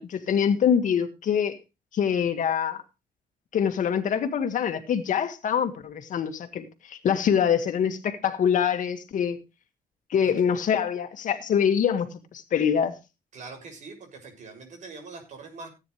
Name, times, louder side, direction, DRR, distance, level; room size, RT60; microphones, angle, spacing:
voice 1, 0.0-1.5 1.9-2.8 3.5-9.4 10.1-12.1 12.3-12.9, left 8 dB, 60° left, 2.0 m, -24 dB
voice 2, 13.3-15.7, right 4 dB, 55° right, 6.8 m, -43 dB
17.5 x 9.6 x 3.3 m
cardioid pair, 130°, 15 cm